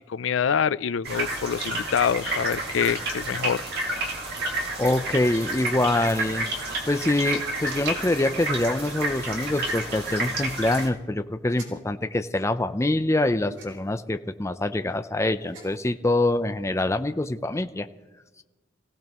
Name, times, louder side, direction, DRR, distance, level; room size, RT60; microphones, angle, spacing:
voice 1, 0.1-3.6, left 7 dB, 80° left, 16 dB, 0.4 m, -25 dB
sound 1, 1.0-10.9, right 2 dB, 60° right, 2.2 m, -30 dB
voice 2, 4.8-6.5 6.9-17.9, left 2 dB, 15° left, 8 dB, 0.5 m, -25 dB
sound 2, 7.6-8.0 9.6-9.8 11.5-11.7 13.5-14.0 15.3-15.9, right 2 dB, 80° right, 4.2 m, -45 dB
27.0 x 16.5 x 3.0 m, 1.2 s
head